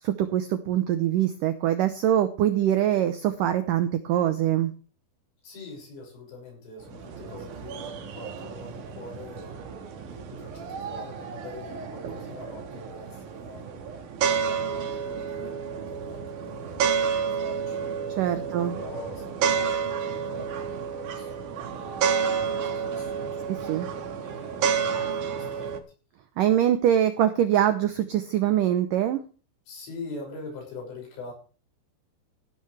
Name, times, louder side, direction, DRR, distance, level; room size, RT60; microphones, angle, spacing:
voice 1, 0.0-4.7 18.2-18.8 23.5-23.9 26.4-29.2, right 11 dB, 90° right, 10 dB, 1.9 m, -23 dB
voice 2, 5.4-9.5 10.1-13.7 14.2-18.2 18.4-23.5 24.2-25.7 29.7-31.3, left 3 dB, 75° left, 0 dB, 8.5 m, -44 dB
sound 1, 6.8-25.8, right 6 dB, 60° right, 2.6 m, -30 dB
16.0 x 12.5 x 3.3 m, 0.37 s
omnidirectional pair, 5.0 m